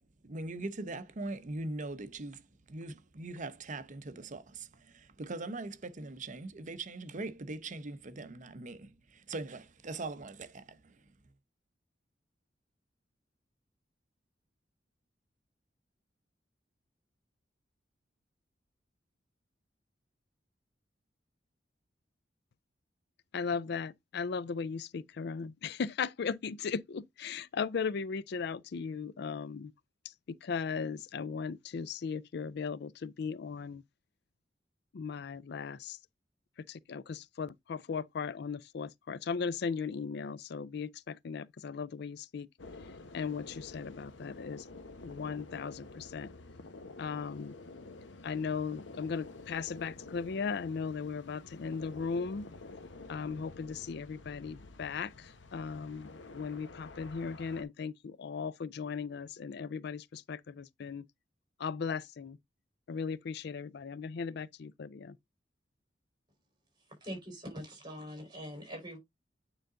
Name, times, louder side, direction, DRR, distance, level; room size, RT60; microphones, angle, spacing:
voice 1, 0.2-11.1, right 2 dB, 45° right, 0.7 m, -41 dB
voice 2, 23.3-29.7 30.0-33.8 34.9-36.0 36.6-42.5 43.1-44.7 45.0-46.3 47.0-47.6 48.2-52.5 53.1-61.1 61.6-62.4 62.9-65.2, left 5 dB, 65° left, 0.4 m, -37 dB
sound 1, 42.6-57.6, left 3 dB, 90° left, 1.0 m, -50 dB
voice 3, 67.0-69.0, equal, 25° right, 4.3 m, -43 dB
9.0 x 3.9 x 3.8 m
head